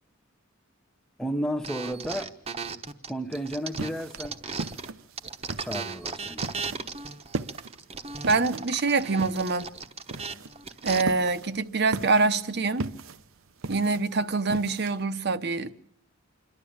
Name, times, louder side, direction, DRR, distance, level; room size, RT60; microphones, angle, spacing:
voice 1, 1.2-2.3 3.1-4.4 5.6-6.5, equal, 5° left, 0.8 m, -32 dB
sound 1, 1.6-4.9 5.2-11.0, right 5 dB, 30° right, 1.0 m, -36 dB
sound 2, 3.3-15.0, right 3 dB, 85° right, 0.8 m, -38 dB
voice 2, 8.3-9.7 10.8-12.9 13.7-15.7, right 3 dB, 55° right, 0.9 m, -25 dB
27.0 x 12.0 x 8.7 m
head